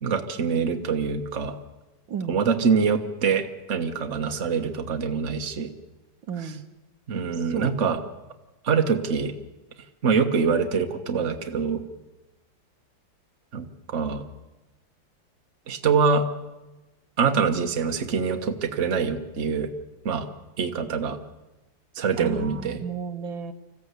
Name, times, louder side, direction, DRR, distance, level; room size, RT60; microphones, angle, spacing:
voice 1, 0.0-1.5 2.3-5.7 7.1-8.0 8.6-9.3 10.0-11.8 13.5-14.2 15.7-16.3 17.2-19.7 20.0-20.3 20.6-21.2 22.0-22.8, right 5 dB, 40° right, 5 dB, 1.6 m, -24 dB
voice 2, 2.1-2.4 6.3-6.7 7.5-7.7 22.2-23.5, right 6 dB, 85° right, 8 dB, 1.8 m, -33 dB
26.0 x 15.5 x 8.2 m, 1.1 s
omnidirectional pair, 2.1 m